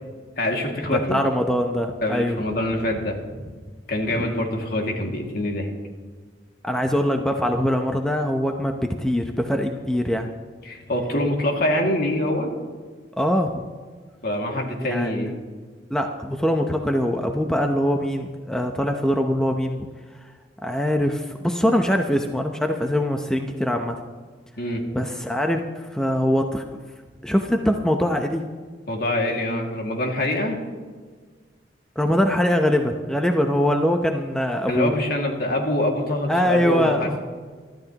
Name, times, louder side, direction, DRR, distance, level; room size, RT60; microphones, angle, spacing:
voice 1, 0.4-1.2 2.0-3.5 3.9-5.7 10.6-12.5 14.2-15.3 24.6-24.8 28.9-30.6 34.7-37.1, left 1 dB, 55° left, 1 dB, 2.2 m, -25 dB
voice 2, 0.9-2.4 4.1-4.5 6.6-10.3 13.2-13.6 14.9-15.4 15.9-19.9 20.6-24.0 24.9-26.6 27.2-28.4 32.0-34.9 36.3-37.2, equal, 5° left, 3 dB, 0.7 m, -23 dB
24.0 x 13.0 x 2.9 m, 1.5 s
head